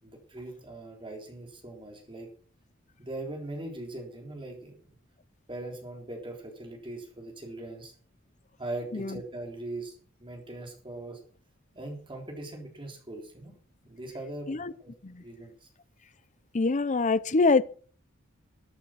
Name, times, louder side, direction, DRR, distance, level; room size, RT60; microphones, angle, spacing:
voice 1, 0.0-2.3 3.0-4.8 5.5-7.9 8.6-11.2 11.7-13.6 13.8-14.9 15.2-15.5, right 2 dB, 25° right, 3.8 m, -40 dB
voice 2, 16.5-17.6, left 3 dB, 35° left, 0.6 m, -24 dB
14.0 x 8.9 x 6.2 m
head